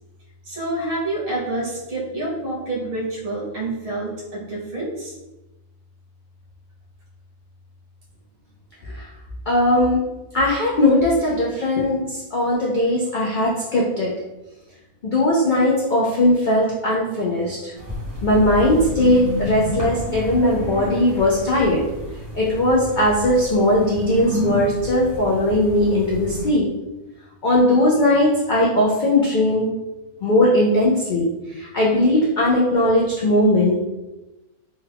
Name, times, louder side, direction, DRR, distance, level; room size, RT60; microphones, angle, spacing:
voice 1, 0.5-5.2, right 2 dB, 65° right, -5 dB, 1.4 m, -28 dB
voice 2, 9.5-10.0 10.3-14.1 15.0-17.6 18.2-21.8 22.3-26.7 27.4-29.7 30.2-33.8, left 1 dB, 60° left, -5 dB, 0.5 m, -19 dB
sound 1, 17.7-26.5, left 1 dB, 15° right, 0.9 m, -30 dB
3.3 x 2.3 x 3.4 m, 1.0 s
omnidirectional pair, 1.5 m